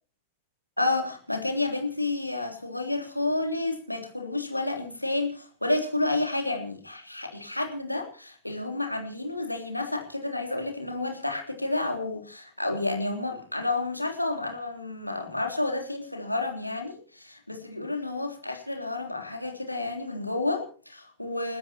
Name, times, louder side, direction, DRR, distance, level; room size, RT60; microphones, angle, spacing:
voice 1, 0.8-21.6, left 2 dB, 85° left, 4 dB, 3.3 m, -30 dB
30.0 x 13.0 x 2.9 m, 0.39 s
figure-of-eight pair, 90°, 0 cm